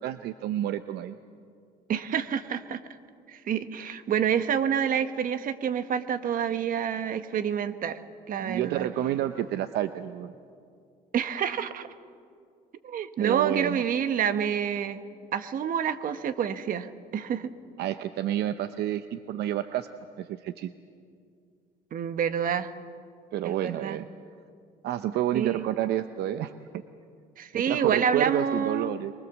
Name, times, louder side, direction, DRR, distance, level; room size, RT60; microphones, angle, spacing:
voice 1, 0.0-1.1 8.4-10.3 13.2-13.8 17.8-19.9 20.2-20.7 23.3-24.1 24.8-26.8 27.5-29.1, right 12 dB, 75° right, 11 dB, 0.7 m, -29 dB
voice 2, 1.9-2.8 3.3-8.0 8.3-8.9 11.1-11.9 12.8-15.0 15.3-17.5 21.9-22.7 23.4-24.0 25.3-25.6 27.4-29.0, right 8 dB, 55° right, 11 dB, 1.3 m, -28 dB
23.5 x 23.0 x 7.3 m, 2.3 s
cardioid pair, 110°, 17 cm